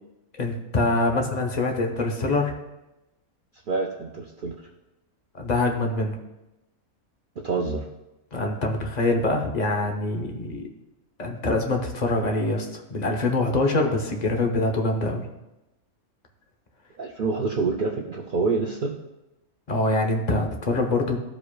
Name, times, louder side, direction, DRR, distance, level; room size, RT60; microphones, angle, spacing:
voice 1, 0.4-2.5 5.3-6.2 8.3-10.6 11.2-15.2 19.7-21.2, left 2 dB, 40° left, 3 dB, 0.7 m, -24 dB
voice 2, 3.7-4.6 7.4-7.8 17.0-18.9, right 4 dB, 75° right, 1 dB, 0.4 m, -26 dB
13.5 x 4.9 x 2.3 m, 0.97 s
omnidirectional pair, 1.5 m